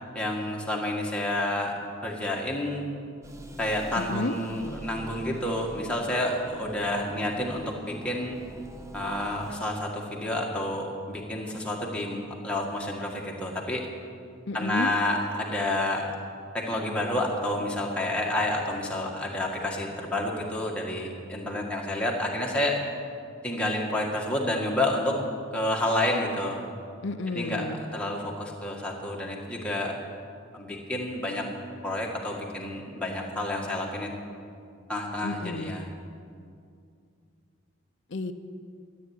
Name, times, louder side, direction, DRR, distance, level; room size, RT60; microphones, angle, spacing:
voice 1, 0.1-1.7 2.0-2.9 3.6-8.4 8.9-13.8 14.5-16.1 16.5-22.8 23.4-25.2 25.5-26.6 27.3-29.9 30.5-31.5 31.8-34.1 34.9-35.8, left 1 dB, 5° left, -2 dB, 1.8 m, -29 dB
sound 1, 3.2-9.6, right 1 dB, 15° right, 0.7 m, -45 dB
voice 2, 4.0-4.4 14.5-14.9 27.0-27.8 35.2-35.8 38.1-38.3, left 2 dB, 55° left, 7 dB, 0.6 m, -31 dB
14.0 x 8.5 x 9.7 m, 2.3 s
head